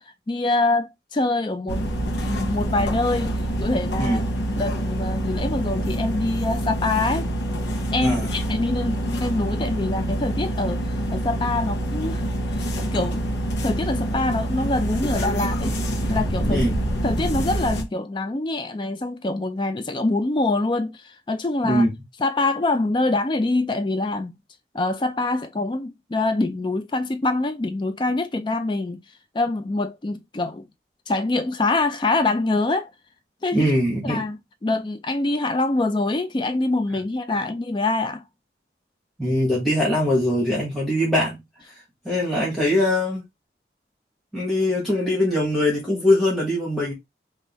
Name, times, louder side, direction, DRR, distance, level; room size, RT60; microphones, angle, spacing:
voice 1, 0.0-1.8 2.2-7.3 7.9-12.6 12.9-13.2 13.6-15.8 16.1-16.6 17.0-21.9 22.2-24.3 24.7-29.0 29.3-30.6 31.1-32.9 33.4-33.7 34.0-38.2, left 2 dB, 25° left, 0.4 m, -25 dB
sound 1, 1.7-17.8, right 1 dB, 85° left, 0.9 m, -26 dB
voice 2, 8.0-8.3 16.5-16.7 21.6-21.9 33.5-34.2 39.2-41.4 41.7-43.2 44.3-46.9, left 1 dB, ahead, 1.3 m, -22 dB
3.6 x 2.5 x 4.0 m
head